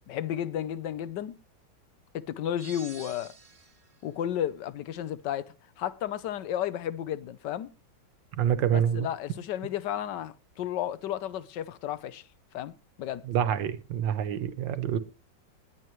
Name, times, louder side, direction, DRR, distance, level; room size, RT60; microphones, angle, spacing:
voice 1, 0.1-1.4 2.1-3.3 4.0-7.7 8.7-12.2 12.5-13.2, left 10 dB, 70° left, 1.4 m, -33 dB
sound 1, 2.6-3.9, right 5 dB, 45° right, 1.9 m, -48 dB
voice 2, 8.4-9.1 13.3-15.0, right 9 dB, 75° right, 1.7 m, -27 dB
20.0 x 8.9 x 3.1 m
omnidirectional pair, 2.0 m